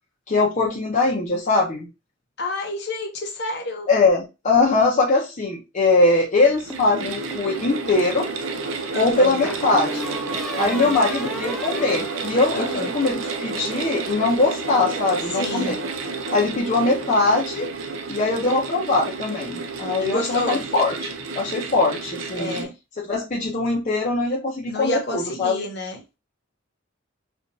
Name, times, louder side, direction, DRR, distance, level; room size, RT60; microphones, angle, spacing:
voice 1, 0.3-1.9 3.9-8.3 9.0-10.1 10.6-15.8 16.3-17.7 18.1-22.7 23.1-25.6, left 3 dB, 40° left, 0.7 m, -21 dB
voice 2, 2.4-3.9 5.1-5.2 8.9-9.4 12.5-12.9 15.3-15.8 20.0-20.7 22.4-22.7 24.7-26.0, left 1 dB, 55° left, 1.0 m, -29 dB
sound 1, 6.4-22.6, right 4 dB, 85° right, 0.6 m, -31 dB
sound 2, 6.7-7.5 9.4-13.0, equal, ahead, 0.4 m, -35 dB
4.4 x 2.5 x 2.6 m
head